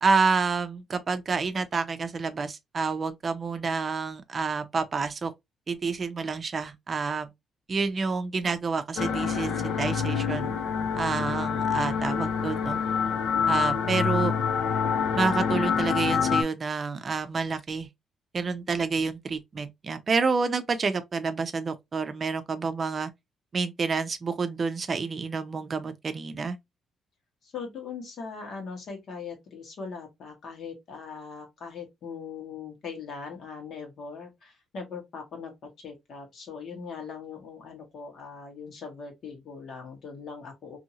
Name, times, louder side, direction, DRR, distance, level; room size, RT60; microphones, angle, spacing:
voice 1, 0.0-5.3 5.7-7.3 7.7-10.5 10.9-12.8 13.5-14.3 15.1-17.9 18.3-23.1 23.5-26.6, right 4 dB, 40° right, 0.5 m, -28 dB
sound 1, 9.0-16.4, left 6 dB, 80° left, 0.5 m, -26 dB
voice 2, 27.4-40.8, left 5 dB, 65° left, 1.3 m, -40 dB
2.7 x 2.6 x 2.8 m
cardioid pair, 100°, 0 cm